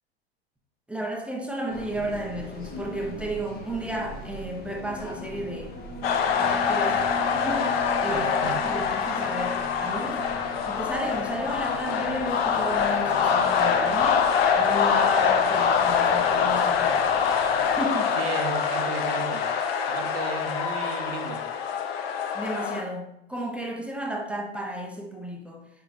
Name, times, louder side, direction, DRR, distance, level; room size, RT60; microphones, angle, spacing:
voice 1, 0.9-5.7 6.3-10.2 10.6-14.2 14.5-17.1 17.6-18.1 22.3-25.6, right 1 dB, 5° right, 1 dB, 0.5 m, -33 dB
sound 1, 1.7-17.8, left 1 dB, 30° left, 0.8 m, -40 dB
sound 2, 6.0-22.8, left 6 dB, 70° left, 0.5 m, -24 dB
voice 2, 8.1-8.6 18.2-19.4 19.9-21.4, right 6 dB, 70° right, 5 dB, 0.8 m, -35 dB
4.5 x 3.2 x 2.6 m, 0.80 s
hypercardioid pair, 90°, 31 cm